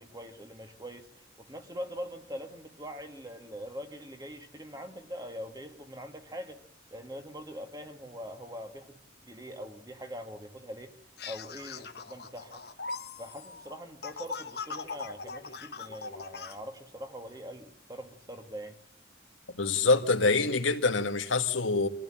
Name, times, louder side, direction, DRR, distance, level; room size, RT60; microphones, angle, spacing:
voice 1, 0.0-6.6 6.9-9.0 9.2-10.9 11.2-12.6 13.2-18.8, equal, 20° right, 1.9 m, -43 dB
sound 1, 11.2-16.6, left 4 dB, 55° left, 1.1 m, -41 dB
voice 2, 19.5-21.9, left 3 dB, 85° left, 2.0 m, -25 dB
24.5 x 15.5 x 8.9 m
head